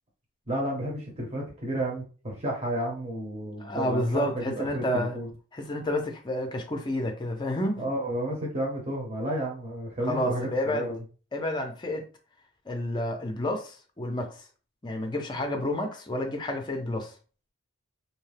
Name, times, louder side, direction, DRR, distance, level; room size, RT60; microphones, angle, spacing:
voice 1, 0.5-5.3 7.8-11.0, right 1 dB, 30° right, 0.9 m, -32 dB
voice 2, 3.6-5.2 5.5-7.8 10.0-10.9 11.3-12.1 12.7-14.3 14.8-17.1, left 1 dB, 20° left, 0.5 m, -30 dB
2.8 x 2.2 x 3.2 m
head